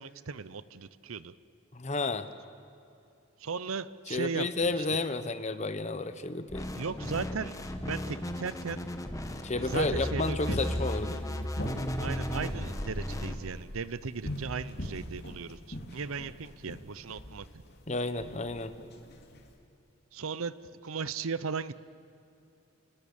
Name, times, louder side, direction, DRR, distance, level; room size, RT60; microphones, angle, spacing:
voice 1, 0.0-1.3 3.4-4.9 6.8-8.8 9.6-10.6 12.0-17.5 20.1-21.8, right 5 dB, 80° right, 16 dB, 0.7 m, -37 dB
voice 2, 1.7-2.3 4.1-6.7 9.4-11.2 17.9-18.7, left 3 dB, 35° left, 11 dB, 1.0 m, -31 dB
sound 1, 6.5-13.4, left 1 dB, 15° left, 1.2 m, -35 dB
sound 2, 10.5-19.5, equal, 50° left, 2.8 m, -41 dB
29.5 x 20.0 x 7.2 m, 2.6 s
head